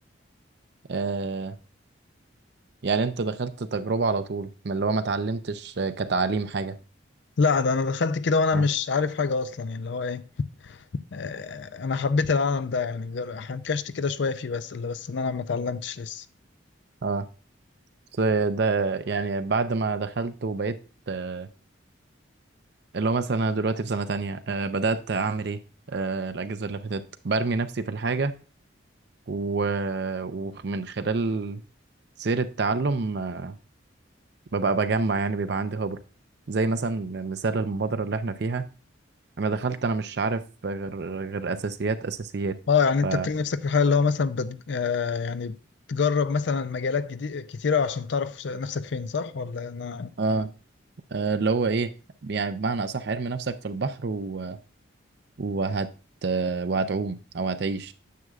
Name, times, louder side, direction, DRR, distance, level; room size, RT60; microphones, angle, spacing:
voice 1, 0.9-1.6 2.8-6.8 8.5-8.7 17.0-17.3 18.2-20.8 21.1-21.5 22.9-25.6 25.9-28.3 29.3-31.6 32.2-33.6 34.5-36.0 36.5-38.6 39.4-42.6 43.0-43.3 50.2-50.5 51.1-51.9 52.2-54.6 55.4-55.9 56.2-57.9, right 4 dB, 55° right, 0.5 m, -27 dB
voice 2, 7.4-10.2 10.6-10.8 11.1-16.2 42.7-45.6 45.9-50.1, left 5 dB, 65° left, 0.5 m, -26 dB
9.4 x 7.5 x 2.4 m
head